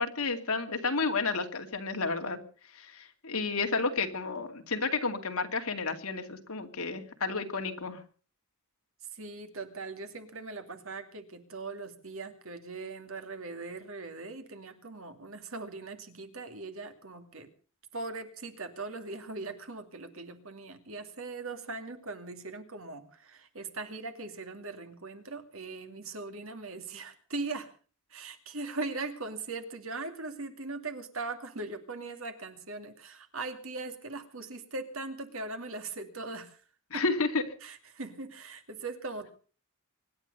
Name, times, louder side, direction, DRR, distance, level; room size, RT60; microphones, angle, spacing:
voice 1, 0.0-2.4 2.7-8.0 36.9-37.4, left 4 dB, 85° left, 5 dB, 2.5 m, -31 dB
voice 2, 9.1-17.5 17.9-27.7 28.1-36.6 36.9-37.0 37.6-39.3, right 3 dB, 70° right, 7 dB, 2.5 m, -40 dB
25.0 x 11.0 x 5.4 m, 0.41 s
head